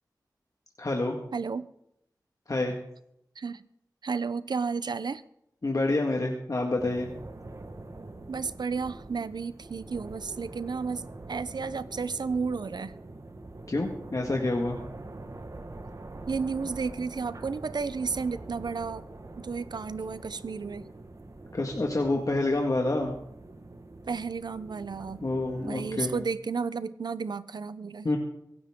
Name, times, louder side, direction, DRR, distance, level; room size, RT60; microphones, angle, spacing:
voice 1, 0.8-1.2 2.5-2.8 5.6-7.1 13.7-14.8 21.5-23.1 25.2-26.1 28.0-28.2, left 2 dB, 50° left, 1 dB, 1.8 m, -27 dB
voice 2, 1.3-1.7 3.4-3.6 4.0-5.2 8.3-12.9 16.3-19.1 19.4-20.9 24.1-25.2 25.6-28.1, right 5 dB, 80° right, 15 dB, 0.7 m, -32 dB
sound 1, 6.8-26.3, right 2 dB, 50° right, 1.5 m, -44 dB
23.5 x 11.5 x 3.7 m, 0.77 s
wide cardioid pair, 65°, 7 cm